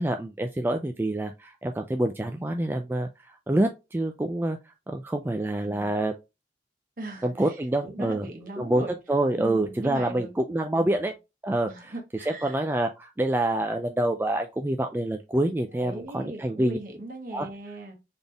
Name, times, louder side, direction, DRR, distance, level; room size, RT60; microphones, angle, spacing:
voice 1, 0.0-4.6 4.9-6.2 7.2-8.2 8.6-8.8 9.1-11.1 11.4-11.9 12.3-16.8 17.3-17.5, right 1 dB, 10° right, 0.3 m, -27 dB
voice 2, 7.0-9.0 9.4-10.3 10.8-11.1 11.6-12.6 15.7-17.9, right 2 dB, 50° right, 1.4 m, -39 dB
4.1 x 3.5 x 3.4 m
head